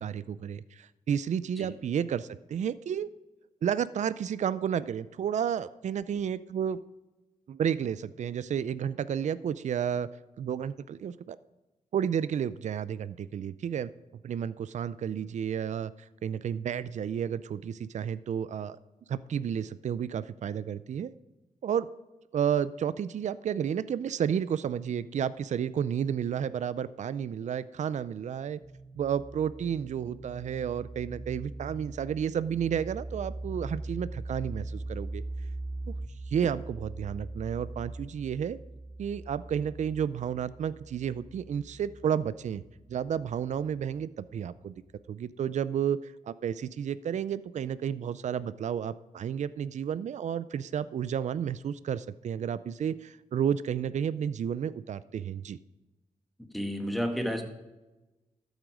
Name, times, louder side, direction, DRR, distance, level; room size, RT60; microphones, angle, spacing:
voice 1, 0.0-3.1 3.6-6.8 7.5-10.1 10.4-11.4 11.9-13.9 14.2-18.8 19.1-21.1 21.6-21.9 22.3-28.6 28.9-35.2 35.9-36.0 36.3-38.6 39.0-42.6 42.9-44.7 45.1-55.6, right 8 dB, 60° right, 16 dB, 0.4 m, -31 dB
sound 1, 28.6-44.1, right 2 dB, 20° right, 0.6 m, -41 dB
voice 2, 56.5-57.4, equal, ahead, 4 dB, 1.8 m, -31 dB
13.0 x 8.1 x 5.0 m, 1.1 s
cardioid pair, 100°, 13 cm